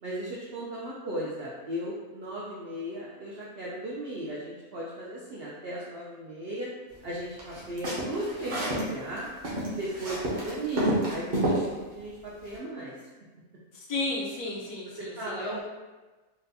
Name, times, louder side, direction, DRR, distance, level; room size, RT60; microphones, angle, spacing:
voice 1, 0.0-6.7 7.0-9.3 9.7-12.9 15.0-15.6, right 1 dB, 75° right, -5 dB, 0.5 m, -36 dB
sound 1, 7.4-8.9 9.2-11.6, right 1 dB, 40° right, 0.7 m, -29 dB
voice 2, 13.9-15.6, left 2 dB, 75° left, -4 dB, 1.3 m, -33 dB
4.0 x 2.2 x 2.6 m, 1.2 s
omnidirectional pair, 1.6 m